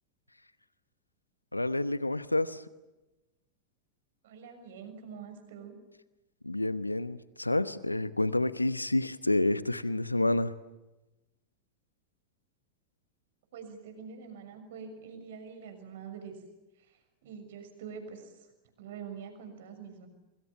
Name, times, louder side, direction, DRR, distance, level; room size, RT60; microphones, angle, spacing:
voice 1, 1.5-2.6 6.4-10.5, left 2 dB, 85° left, 15 dB, 1.1 m, -29 dB
voice 2, 4.2-5.8 13.5-16.3 16.7-18.5 18.8-20.1, right 6 dB, 55° right, 7 dB, 6.6 m, -45 dB
27.0 x 25.0 x 7.2 m, 1.0 s
figure-of-eight pair, 90°, 0 cm